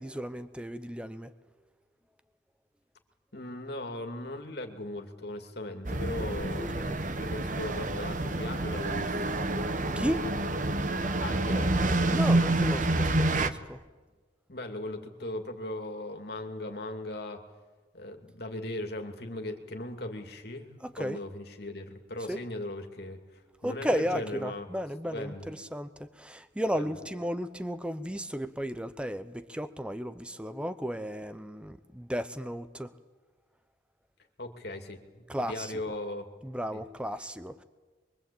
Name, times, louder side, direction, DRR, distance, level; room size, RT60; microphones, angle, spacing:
voice 1, 0.0-1.3 6.7-7.0 9.7-10.3 12.1-13.8 20.8-21.2 22.3-22.4 23.6-32.9 35.3-35.9 36.4-37.6, equal, 5° right, 11 dB, 0.7 m, -34 dB
voice 2, 3.3-6.8 7.2-9.4 11.2-11.7 12.1-12.4 14.5-17.4 17.9-24.7 25.0-25.5 26.7-27.0 34.4-36.2 36.7-36.8, left 1 dB, 55° left, 4 dB, 2.6 m, -38 dB
sound 1, 5.8-13.5, right 2 dB, 40° right, 1.0 m, -28 dB
26.0 x 23.5 x 8.7 m, 1.3 s
head